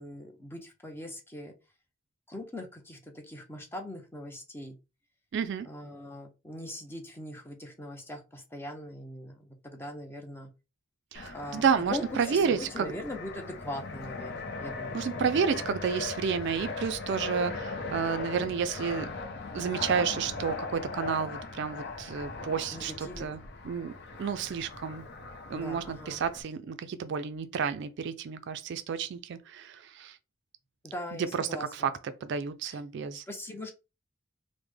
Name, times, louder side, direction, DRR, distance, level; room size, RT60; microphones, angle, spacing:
voice 1, 0.0-1.5 2.3-4.8 5.6-10.5 11.3-11.6 11.9-15.1 22.7-23.3 25.5-26.2 30.8-31.9 32.6-32.8 33.3-33.7, left 1 dB, 10° left, 0.5 m, -41 dB
voice 2, 5.3-5.7 11.1-12.9 14.9-19.1 19.5-23.4 23.6-23.9 24.2-25.0 25.5-30.2 31.1-33.2, right 6 dB, 55° right, 0.3 m, -31 dB
Fixed-wing aircraft airplane, 11.1-26.4, left 3 dB, 50° left, 0.6 m, -39 dB
3.3 x 2.1 x 3.3 m
head